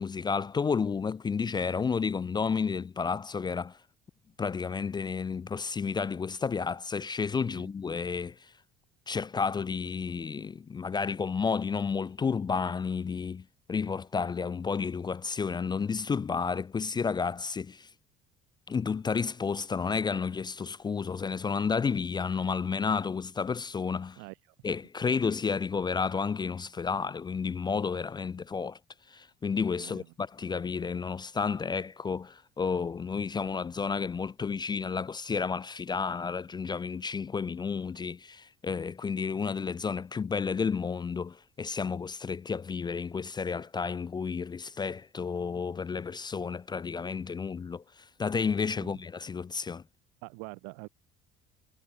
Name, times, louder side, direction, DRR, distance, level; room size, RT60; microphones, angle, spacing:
voice 1, 0.0-3.8 4.4-8.4 9.1-17.9 18.7-24.2 24.6-28.8 29.1-47.8 48.2-49.8, left 5 dB, 20° left, 0.4 m, -31 dB
voice 2, 29.8-30.1 48.8-48.9 50.2-50.9, right 38 dB, 85° right, 4.3 m, -45 dB
supercardioid pair, 85°, 20 cm